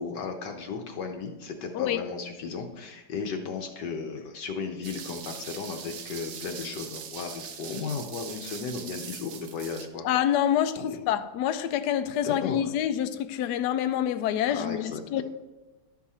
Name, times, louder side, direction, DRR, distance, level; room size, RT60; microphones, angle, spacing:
voice 1, 0.0-10.1 10.8-10.9 12.2-12.6 14.5-15.2, left 5 dB, 65° left, 1.2 m, -35 dB
sound 1, 4.8-9.9, right 7 dB, 80° right, 0.7 m, -41 dB
voice 2, 10.0-15.2, left 10 dB, 90° left, 0.9 m, -27 dB
11.5 x 6.2 x 4.2 m
omnidirectional pair, 2.4 m